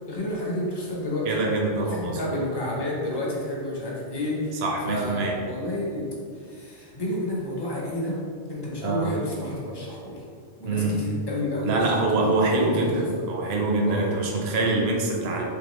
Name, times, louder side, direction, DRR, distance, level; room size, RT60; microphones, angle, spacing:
voice 1, 0.1-1.3 1.8-8.2 8.5-10.2 10.6-13.2 13.8-14.2, left 1 dB, 25° left, -4 dB, 0.6 m, -30 dB
voice 2, 1.3-2.4 4.6-5.3 8.8-9.1 10.6-11.0 11.6-15.4, right 2 dB, 65° right, 1 dB, 0.8 m, -25 dB
3.7 x 3.2 x 3.0 m, 2.2 s
omnidirectional pair, 1.2 m